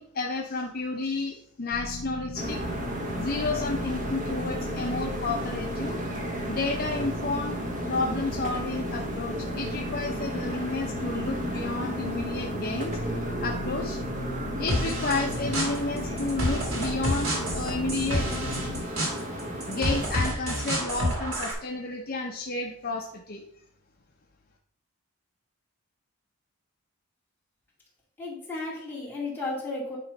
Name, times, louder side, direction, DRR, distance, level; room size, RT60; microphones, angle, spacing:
voice 1, 0.0-2.6 3.2-6.0 6.5-13.0 13.4-14.0 14.6-18.3 19.7-23.4, left 3 dB, 40° left, 0 dB, 0.6 m, -31 dB
sound 1, 1.7-18.9, left 2 dB, 85° left, 0.6 m, -38 dB
sound 2, 2.4-20.2, right 1 dB, 35° right, 1.0 m, -34 dB
sound 3, 14.7-21.5, equal, 70° right, 2.1 m, -30 dB
voice 2, 28.2-30.0, left 2 dB, 10° left, -5 dB, 2.3 m, -34 dB
9.2 x 3.1 x 5.3 m, 0.65 s
head